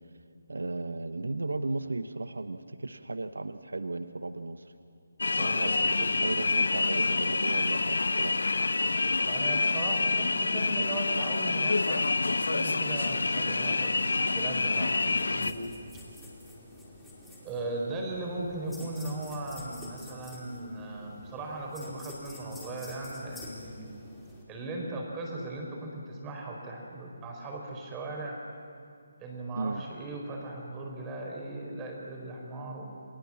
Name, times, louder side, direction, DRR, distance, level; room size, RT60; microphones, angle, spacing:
voice 1, 0.5-4.7 5.4-8.4 18.8-18.9 29.6-29.8, right 2 dB, 85° right, 10 dB, 1.1 m, -35 dB
sound 1, 5.2-15.5, left 3 dB, 80° left, 1.0 m, -27 dB
voice 2, 5.4-6.1 9.3-12.1 12.5-15.7 17.4-23.9 24.5-28.4 29.2-32.9, right 2 dB, 15° right, 0 dB, 5.0 m, -38 dB
sound 2, 15.0-24.4, left 1 dB, 5° left, 4.5 m, -48 dB
30.0 x 20.5 x 7.5 m, 2.3 s
figure-of-eight pair, 155°, 0 cm